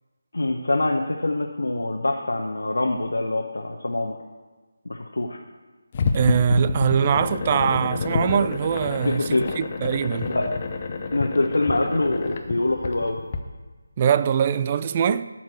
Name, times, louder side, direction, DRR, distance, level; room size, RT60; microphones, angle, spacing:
voice 1, 0.3-4.2 4.8-5.4 9.0-9.6 10.3-10.5 11.1-13.2, left 2 dB, 70° left, 0.9 m, -24 dB
sound 1, 5.9-13.4, left 4 dB, 30° left, 0.8 m, -28 dB
voice 2, 6.1-10.3 14.0-15.3, right 8 dB, 25° right, 0.3 m, -22 dB
12.5 x 4.5 x 7.7 m
figure-of-eight pair, 155°, 0 cm